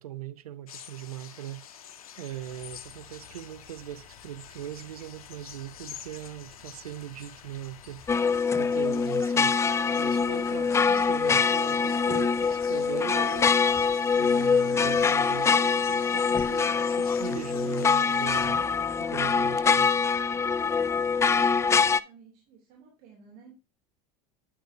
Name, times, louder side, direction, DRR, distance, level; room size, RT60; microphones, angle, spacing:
voice 1, 0.0-1.8 2.2-8.1 8.6-9.6 10.0-13.8 14.1-18.6 19.0-19.9, right 12 dB, 85° right, 0.7 m, -40 dB
sound 1, 0.7-18.5, left 9 dB, 85° left, 0.8 m, -48 dB
sound 2, 2.3-8.4, left 5 dB, 45° left, 2.6 m, -54 dB
sound 3, 8.1-22.0, left 5 dB, 15° left, 0.3 m, -24 dB
voice 2, 21.3-23.5, right 5 dB, 55° right, 2.9 m, -55 dB
9.8 x 7.9 x 2.7 m
hypercardioid pair, 85°, 18 cm